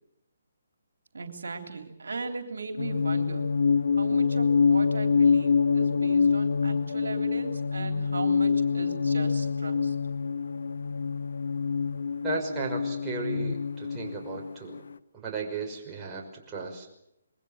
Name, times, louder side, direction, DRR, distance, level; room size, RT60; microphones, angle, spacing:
voice 1, 1.1-3.5 4.0-10.0, right 3 dB, 70° right, 6 dB, 3.4 m, -38 dB
sound 1, 2.8-14.8, left 5 dB, 65° left, 1.1 m, -26 dB
voice 2, 12.2-14.8 15.1-16.9, right 4 dB, 15° right, -3 dB, 5.8 m, -35 dB
26.5 x 22.5 x 7.4 m, 0.80 s
figure-of-eight pair, 140°, 0 cm